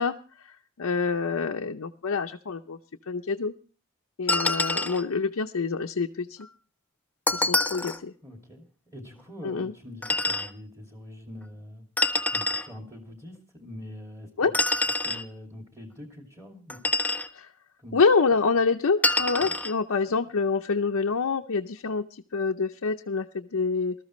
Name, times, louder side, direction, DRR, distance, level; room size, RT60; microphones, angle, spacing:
voice 1, 0.0-2.8 3.1-3.5 4.2-6.4 7.3-8.1 9.4-9.7 14.4-14.5 17.3-17.5 17.9-22.0 22.3-23.9, left 4 dB, 75° left, 3 dB, 0.6 m, -26 dB
sound 1, 4.3-5.0 7.3-8.0 10.0-10.5 12.0-12.7 14.5-15.2 16.7-17.3 19.0-19.7, left 2 dB, 10° left, 0.6 m, -26 dB
voice 2, 8.2-11.8 12.3-14.5 15.0-16.8 17.8-18.0 19.4-19.5, left 1 dB, 15° right, 2 dB, 2.4 m, -44 dB
19.5 x 13.5 x 3.1 m, 0.38 s
head